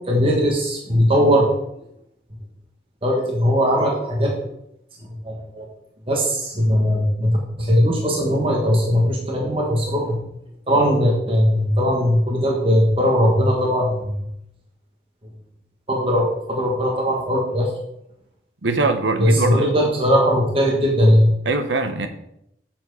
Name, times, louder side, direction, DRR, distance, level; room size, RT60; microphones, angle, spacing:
voice 1, 0.1-1.5 3.0-4.3 5.2-5.7 6.1-10.3 10.7-14.2 15.9-17.7 19.2-21.3, equal, 30° right, -1 dB, 1.4 m, -19 dB
voice 2, 18.6-19.9 21.5-22.1, right 3 dB, 90° right, 8 dB, 0.9 m, -22 dB
7.2 x 7.0 x 4.8 m, 0.78 s
head